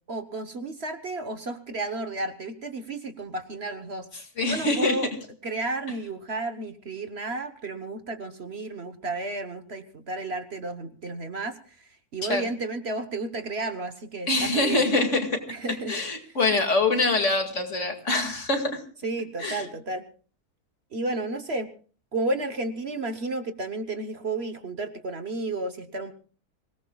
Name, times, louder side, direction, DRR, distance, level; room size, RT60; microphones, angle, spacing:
voice 1, 0.1-5.1 5.4-14.8 15.5-16.0 19.0-20.0 20.9-21.7 22.1-26.1, right 2 dB, 45° right, 8 dB, 1.2 m, -32 dB
voice 2, 4.4-5.0 12.2-12.5 14.3-15.4 15.9-18.8 19.4-19.6, left 2 dB, 55° left, 4 dB, 2.6 m, -24 dB
25.5 x 18.0 x 2.3 m, 0.41 s
omnidirectional pair, 1.6 m